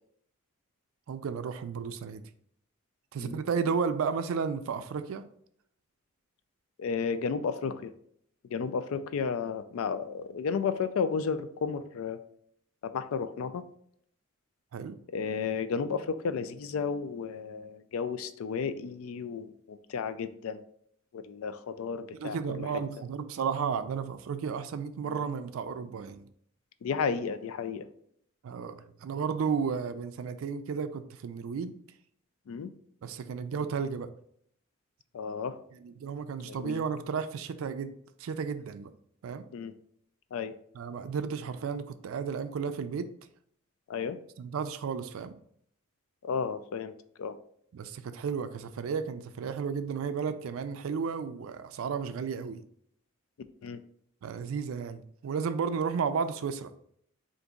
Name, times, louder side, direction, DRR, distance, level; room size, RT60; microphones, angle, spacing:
voice 1, 1.1-2.2 3.1-5.2 14.7-15.0 22.1-26.2 28.4-31.7 33.0-34.1 35.8-38.9 39.2-39.4 40.8-43.1 44.4-45.4 47.7-52.6 54.2-56.7, right 6 dB, 75° right, 10 dB, 0.3 m, -33 dB
voice 2, 6.8-7.9 8.5-12.2 12.8-13.6 15.1-20.6 21.1-22.7 25.0-25.2 26.8-27.9 32.5-32.7 35.1-35.6 36.4-36.8 39.5-39.7 40.3-40.5 43.9-44.2 46.2-46.9 47.2-47.4 53.6-53.8, left 6 dB, 80° left, 11 dB, 0.3 m, -33 dB
3.9 x 2.5 x 3.6 m, 0.67 s
head